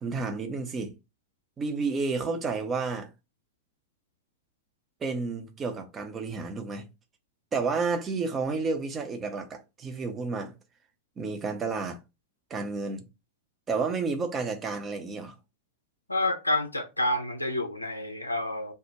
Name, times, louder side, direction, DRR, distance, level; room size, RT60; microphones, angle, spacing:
voice 1, 0.0-0.9 1.6-3.1 5.0-6.9 7.5-10.5 11.2-12.0 12.5-13.0 13.7-15.4, right 4 dB, 20° right, 0.5 m, -31 dB
voice 2, 16.1-18.7, left 1 dB, 85° left, 0.5 m, -29 dB
2.2 x 2.0 x 2.9 m
figure-of-eight pair, 90°, 0 cm